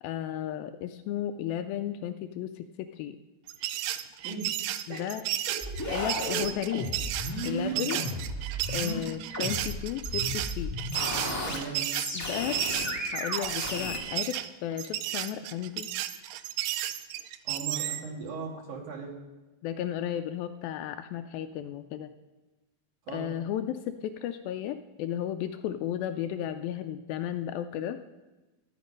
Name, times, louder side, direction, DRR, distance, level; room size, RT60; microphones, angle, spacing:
voice 1, 0.0-3.2 4.9-5.2 5.9-7.1 7.4-8.0 8.7-10.7 12.1-12.6 13.1-15.9 19.6-22.1 23.1-28.0, left 11 dB, 80° left, 8 dB, 2.2 m, -34 dB
sound 1, 3.5-18.1, right 13 dB, 80° right, 2.0 m, -33 dB
sound 2, 5.6-9.0 9.3-11.6 11.9-14.0, left 1 dB, 25° left, 0.3 m, -34 dB
voice 2, 7.2-7.9 11.4-11.9 17.4-19.2 23.0-23.3, right 4 dB, 55° right, -1 dB, 3.2 m, -39 dB
13.0 x 10.5 x 5.2 m, 1.1 s
omnidirectional pair, 4.4 m